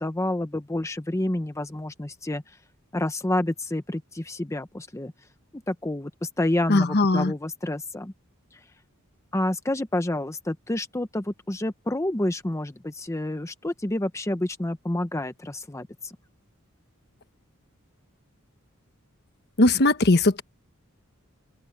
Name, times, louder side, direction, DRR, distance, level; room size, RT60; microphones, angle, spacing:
voice 1, 0.0-2.6 2.9-5.1 5.7-8.1 8.5-8.6 9.3-16.2, left 1 dB, 15° left, 0.8 m, -29 dB
voice 2, 6.7-7.3 19.6-20.4, left 2 dB, 50° left, 1.2 m, -19 dB
open air
head